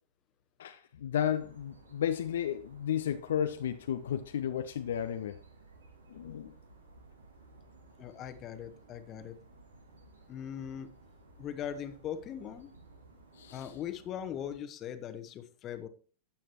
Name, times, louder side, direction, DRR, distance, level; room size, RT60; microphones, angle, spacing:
voice 1, 0.6-5.4 6.1-6.5 13.3-13.7, left 9 dB, 60° left, 9 dB, 0.6 m, -33 dB
sound 1, 1.2-14.6, right 2 dB, 75° right, 2.1 m, -57 dB
voice 2, 8.0-9.4 10.3-10.9 11.4-12.7 13.5-15.9, left 9 dB, 30° left, 10 dB, 1.1 m, -40 dB
12.5 x 8.9 x 3.0 m, 0.38 s
figure-of-eight pair, 90°, 0 cm